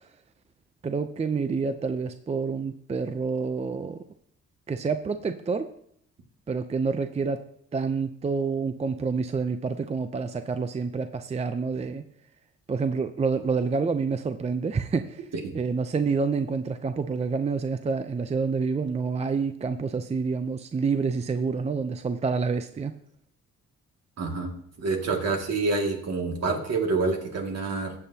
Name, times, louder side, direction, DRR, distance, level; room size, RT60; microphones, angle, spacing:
voice 1, 0.8-4.0 4.7-5.7 6.5-7.4 7.7-12.0 12.7-15.3 15.5-22.9, right 5 dB, 20° right, 9 dB, 0.5 m, -28 dB
voice 2, 24.2-24.5 24.8-27.9, right 3 dB, 60° right, 2 dB, 2.1 m, -27 dB
14.5 x 7.6 x 2.8 m, 0.66 s
cardioid pair, 90°, 30 cm